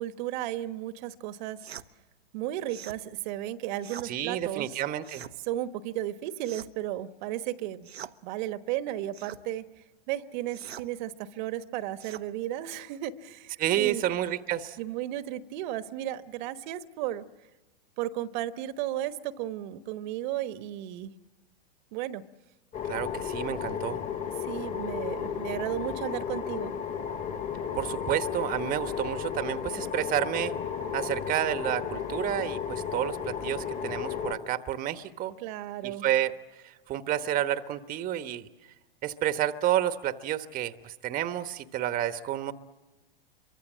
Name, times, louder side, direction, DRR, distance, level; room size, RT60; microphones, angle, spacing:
voice 1, 0.0-1.6 2.3-4.8 5.5-7.9 8.2-9.7 10.1-14.0 14.8-17.2 18.0-21.1 21.9-22.2 24.4-26.7 35.4-36.0, right 13 dB, 50° right, 11 dB, 1.2 m, -34 dB
sound 1, 1.6-1.9 2.7-3.0 3.8-4.1 5.0-5.4 6.4-6.9 7.8-8.2 9.1-9.4 10.5-10.9 12.0-12.3, right 9 dB, 90° right, 1.0 m, -43 dB
voice 2, 4.0-5.3 13.6-14.8 22.9-24.0 27.8-30.5 30.9-35.3 35.8-36.3 36.6-38.5 39.0-42.5, right 12 dB, 25° right, 10 dB, 1.2 m, -30 dB
sound 2, 22.7-34.3, left 7 dB, 25° left, 2.4 m, -34 dB
26.5 x 24.0 x 7.4 m, 1.1 s
hypercardioid pair, 120°, 30 cm